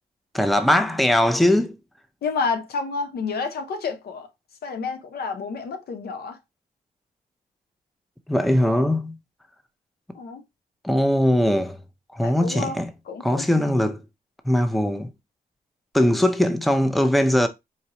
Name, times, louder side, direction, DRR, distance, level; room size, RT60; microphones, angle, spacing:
voice 1, 0.3-1.8 8.3-9.2 10.8-11.8 12.1-12.9 13.2-14.0 14.5-15.1 15.9-17.5, left 1 dB, ahead, 0.6 m, -20 dB
voice 2, 2.2-4.3 4.6-6.4 10.1-10.4 12.2-12.8 13.1-13.4, left 4 dB, 75° left, 0.7 m, -29 dB
4.2 x 2.5 x 2.9 m
cardioid pair, 60°, 16 cm